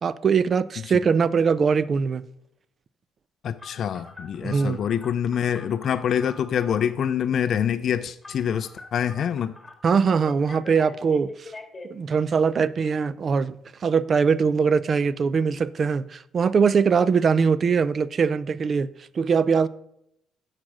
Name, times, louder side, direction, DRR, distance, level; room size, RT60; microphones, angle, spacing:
voice 1, 0.0-2.2 4.4-4.8 9.8-11.5 11.9-18.9 19.2-19.7, right 5 dB, 35° right, 0.4 m, -22 dB
voice 2, 3.4-9.6, left 8 dB, 50° left, 0.4 m, -26 dB
Telephone, 3.6-7.0 8.2-9.7 10.3-11.9, left 3 dB, 15° left, 1.5 m, -44 dB
8.5 x 6.4 x 6.2 m
cardioid pair, 140°, 0 cm